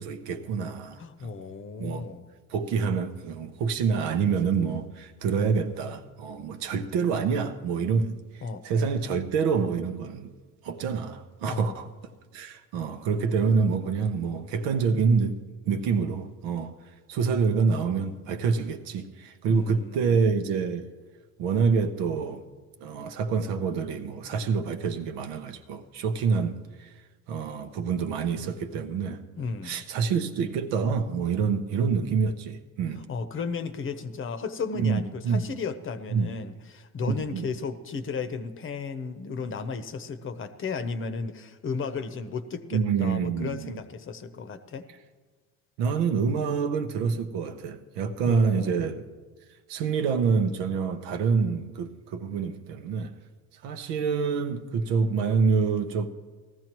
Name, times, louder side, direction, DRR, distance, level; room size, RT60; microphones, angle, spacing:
voice 1, 0.0-1.3 1.8-2.1 2.5-8.2 8.6-10.3 10.6-11.9 12.3-15.4 15.6-16.7 17.1-20.9 21.4-22.4 22.8-26.9 27.3-29.2 29.6-33.1 34.7-35.5 36.1-36.3 37.1-37.5 42.7-43.7 45.8-49.0 49.7-53.1 53.6-56.1, right 5 dB, 85° right, 0.9 m, -27 dB
voice 2, 1.0-2.2 8.4-8.6 11.4-11.8 19.5-20.2 29.4-29.8 33.0-44.9 48.2-48.7, left 5 dB, 35° left, 0.8 m, -34 dB
19.0 x 14.0 x 3.0 m
cardioid pair, 110°, 34 cm